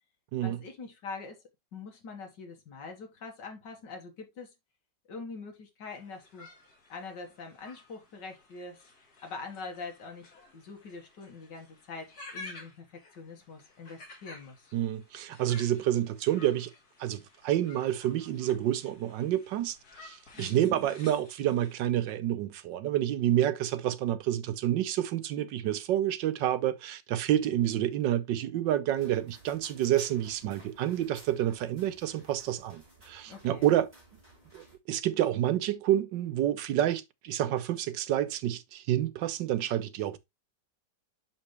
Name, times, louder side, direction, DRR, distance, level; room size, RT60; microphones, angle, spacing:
voice 1, 0.4-1.4 1.7-4.5 5.1-6.5 6.9-14.7 20.3-20.7 33.2-33.7, left 4 dB, 70° left, 2.2 m, -44 dB
sound 1, 5.9-21.7, left 2 dB, 55° left, 2.4 m, -52 dB
voice 2, 14.7-16.7 17.0-33.9 34.5-40.2, right 12 dB, 80° right, 1.4 m, -29 dB
sound 2, 29.0-34.8, right 1 dB, 15° right, 3.8 m, -56 dB
6.0 x 5.9 x 3.2 m
omnidirectional pair, 2.0 m